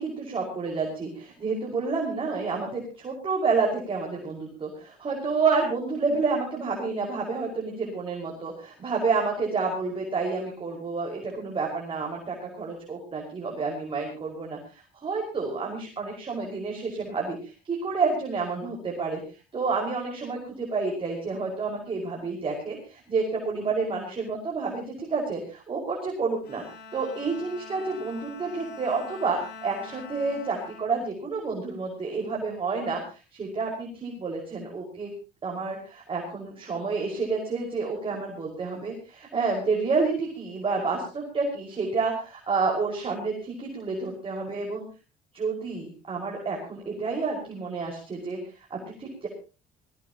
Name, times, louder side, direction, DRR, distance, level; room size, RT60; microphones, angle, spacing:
voice 1, 0.0-19.2 19.5-26.6 26.9-35.1 35.4-44.8 45.3-48.4 48.7-49.3, right 4 dB, 30° right, -1 dB, 5.6 m, -29 dB
Bowed string instrument, 26.4-32.0, left 4 dB, 70° left, 6.7 m, -45 dB
20.0 x 19.0 x 3.0 m, 0.34 s
cardioid pair, 110°, 17 cm